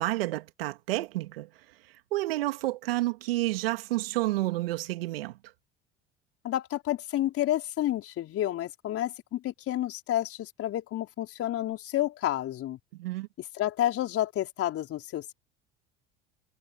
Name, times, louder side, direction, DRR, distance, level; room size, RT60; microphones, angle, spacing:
voice 1, 0.0-1.5 2.1-5.4 12.9-13.3, right 18 dB, 80° right, 2.6 m, -30 dB
voice 2, 6.4-12.8 13.5-15.3, left 13 dB, 50° left, 4.4 m, -30 dB
hypercardioid pair, 70°, 29 cm